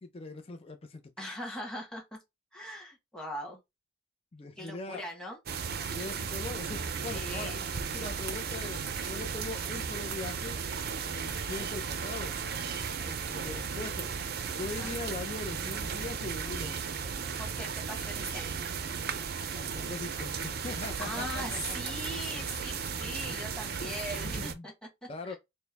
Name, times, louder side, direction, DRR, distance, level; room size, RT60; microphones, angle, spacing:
voice 1, 0.0-1.4 4.3-5.1 5.9-7.5 7.9-10.6 11.1-12.4 13.0-14.1 14.6-16.8 19.5-21.6 21.9-22.2 23.8-23.9 24.2-24.7 25.1-25.4, left 3 dB, 30° left, 0.5 m, -41 dB
voice 2, 1.2-2.2 2.5-3.6 4.6-5.4 7.1-8.1 14.6-15.0 17.4-18.6 21.0-24.7 25.0-25.4, left 1 dB, 5° left, 1.3 m, -41 dB
Rain (frontdoor), 5.5-24.5, right 6 dB, 55° right, 0.5 m, -35 dB
4.4 x 2.1 x 3.4 m
head